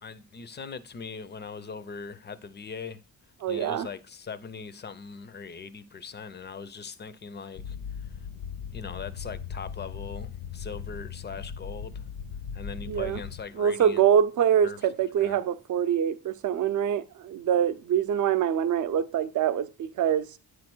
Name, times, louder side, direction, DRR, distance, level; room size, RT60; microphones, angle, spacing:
voice 1, 0.0-3.0 3.5-7.8 8.0-8.1 8.7-12.0 12.5-14.0 14.6-14.8 15.2-15.4, left 5 dB, 30° left, 0.4 m, -40 dB
voice 2, 3.4-3.9 12.9-13.2 13.6-20.4, right 9 dB, 50° right, 0.6 m, -25 dB
sound 1, 7.6-13.4, left 7 dB, 80° left, 0.8 m, -38 dB
9.2 x 3.2 x 6.0 m
wide cardioid pair, 160°, 38 cm